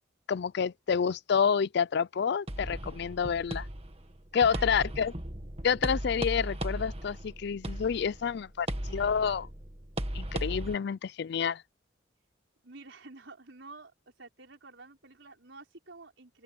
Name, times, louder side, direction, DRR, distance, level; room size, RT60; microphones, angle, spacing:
voice 1, 0.3-3.7 4.3-5.1 5.6-9.5 10.1-11.6, left 6 dB, 60° left, 0.4 m, -28 dB
sound 1, 2.5-10.7, right 1 dB, 35° right, 1.8 m, -37 dB
voice 2, 4.3-4.9 12.6-16.4, right 3 dB, 75° right, 5.0 m, -50 dB
open air
head